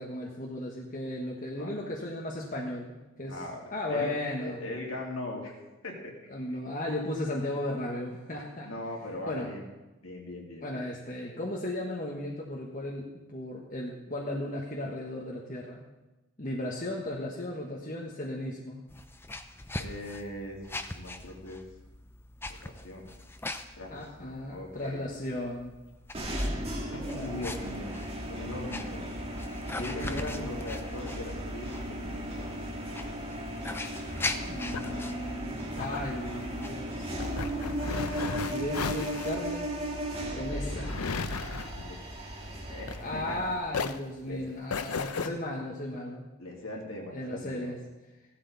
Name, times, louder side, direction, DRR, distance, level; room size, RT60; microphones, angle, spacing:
voice 1, 0.0-3.4 3.7-4.6 6.3-8.7 9.2-9.5 10.6-15.8 16.4-18.8 23.9-25.7 34.5-37.1 37.6-37.7 38.4-39.7 40.3-41.0 43.0-46.3 47.1-47.8, left 1 dB, 35° left, -2 dB, 1.4 m, -35 dB
voice 2, 3.2-3.6 3.9-4.1 4.4-5.6 5.8-6.6 8.6-9.6 10.0-10.8 19.8-20.6 20.9-21.6 22.5-23.0 23.8-25.0 26.9-27.9 28.3-29.1 29.8-32.5 34.5-35.0 40.3-40.8 41.7-42.0 42.4-43.4 44.3-44.4 46.4-47.7, left 1 dB, 65° left, -2 dB, 3.1 m, -40 dB
sound 1, 18.9-38.6, left 2 dB, 10° left, 0.5 m, -42 dB
sound 2, 26.1-43.6, right 1 dB, 25° right, 1.8 m, -36 dB
sound 3, 34.3-43.4 43.7-45.3, left 5 dB, 85° left, 0.7 m, -36 dB
15.5 x 12.5 x 4.1 m, 1.1 s
head